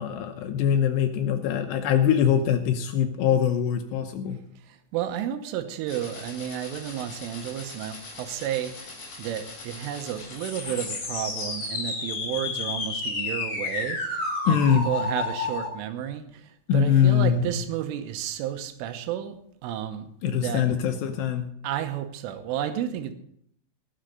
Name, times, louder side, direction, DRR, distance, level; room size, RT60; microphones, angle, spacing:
voice 1, 0.0-4.4 14.5-14.9 16.7-17.5 20.2-21.5, left 9 dB, 80° left, 5 dB, 2.6 m, -23 dB
voice 2, 4.6-20.7 21.6-23.1, right 10 dB, 90° right, 8 dB, 3.5 m, -32 dB
sound 1, 5.9-15.7, left 3 dB, 40° left, 5.0 m, -33 dB
18.0 x 6.4 x 6.5 m, 0.69 s
omnidirectional pair, 5.7 m